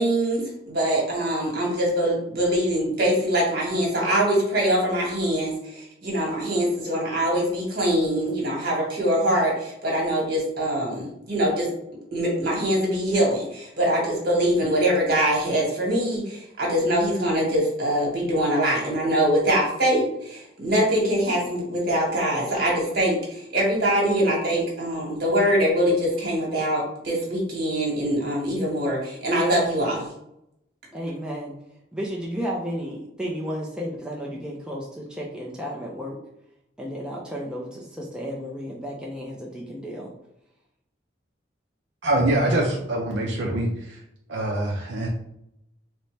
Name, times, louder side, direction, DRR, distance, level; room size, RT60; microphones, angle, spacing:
voice 1, 0.0-11.7 12.1-30.1, equal, 55° right, -2 dB, 1.4 m, -23 dB
voice 2, 30.9-31.5 31.9-36.2 36.8-40.1, equal, 5° right, -3 dB, 0.4 m, -33 dB
voice 3, 42.0-44.0 44.3-45.1, right 1 dB, 75° right, -1 dB, 0.5 m, -24 dB
4.1 x 2.1 x 3.1 m, 0.79 s
head